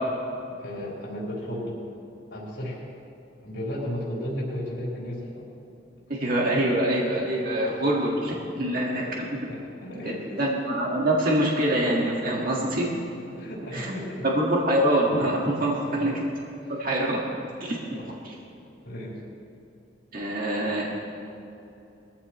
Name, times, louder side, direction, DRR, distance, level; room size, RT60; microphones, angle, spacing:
voice 1, 0.6-1.8 2.3-2.8 3.4-5.5 8.9-9.2 9.5-10.4 13.3-14.3 15.9-16.1 17.1-17.2 17.9-18.1 18.8-19.2, equal, 80° left, -6 dB, 4.0 m, -34 dB
voice 2, 6.1-9.3 10.4-12.9 13.7-14.0 14.2-16.2 16.7-17.2 17.6-17.8 18.2-18.3 20.1-21.0, right 1 dB, 50° right, -3 dB, 1.8 m, -25 dB
21.5 x 14.5 x 3.2 m, 2.8 s
head